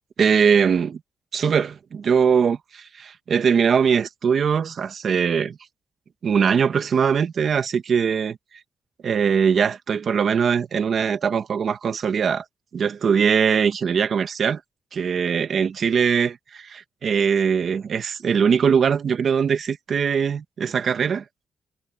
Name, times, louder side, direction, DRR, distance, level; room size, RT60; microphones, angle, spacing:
voice 1, 0.2-1.0 1.3-5.6 6.2-8.4 9.0-12.4 12.7-14.6 14.9-21.2, right 6 dB, 50° right, 1.4 m, -21 dB
wide cardioid pair, 140°, 0 cm